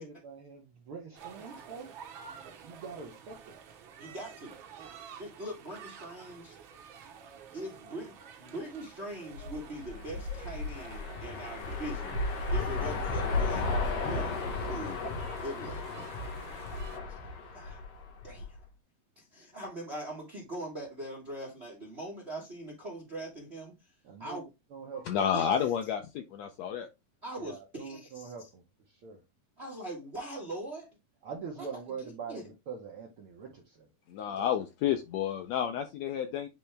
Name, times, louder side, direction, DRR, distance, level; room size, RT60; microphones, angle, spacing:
voice 1, 0.0-1.9 2.5-3.6 16.1-16.7 17.2-17.7 24.0-24.4 24.7-25.2 27.4-29.2 31.2-33.9 34.3-34.4, right 5 dB, 65° right, 1.4 m, -44 dB
sound 1, 1.1-17.0, right 7 dB, 90° right, 1.0 m, -50 dB
voice 2, 4.0-4.5 5.2-6.6 7.5-12.2 12.5-13.7 14.0-15.0 15.3-16.0 17.1-17.8 18.2-18.6 19.2-23.9 24.2-24.4 25.3-25.5 27.2-28.5 29.6-30.9 31.6-31.7 32.3-32.4, right 1 dB, 45° right, 0.8 m, -42 dB
sound 2, 9.3-18.6, left 3 dB, 65° left, 2.4 m, -34 dB
voice 3, 24.9-26.9 34.1-36.5, left 9 dB, 80° left, 1.6 m, -30 dB
8.5 x 3.4 x 3.3 m
omnidirectional pair, 3.6 m